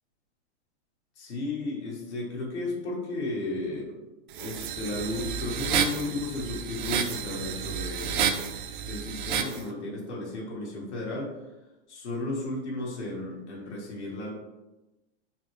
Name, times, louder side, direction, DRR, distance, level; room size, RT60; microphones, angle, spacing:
voice 1, 1.1-4.0 4.4-8.3 8.9-11.4 11.9-14.3, left 2 dB, 90° left, -4 dB, 1.5 m, -34 dB
sound 1, 4.3-9.6, right 7 dB, 50° right, 0.4 m, -31 dB
4.1 x 2.9 x 3.1 m, 1.0 s
supercardioid pair, 150°, 33 cm